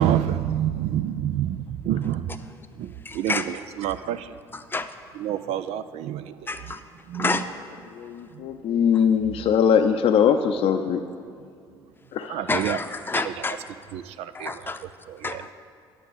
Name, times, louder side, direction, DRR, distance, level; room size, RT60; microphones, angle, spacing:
voice 1, 0.0-2.4 2.8-4.4 5.1-6.7 7.1-7.4 8.3-8.4 12.3-12.8 13.1-13.3 13.9-14.7 15.1-15.5, right 11 dB, 60° right, 12 dB, 0.4 m, -28 dB
voice 2, 3.0-3.5 4.5-4.9 6.5-6.8 7.1-7.5 12.5-13.6 14.3-14.8 15.2-15.5, left 3 dB, 15° left, 8 dB, 0.7 m, -28 dB
voice 3, 7.9-11.0 12.1-12.4, left 7 dB, 50° left, 6 dB, 0.6 m, -21 dB
10.0 x 6.1 x 8.0 m, 2.3 s
figure-of-eight pair, 50°, 12 cm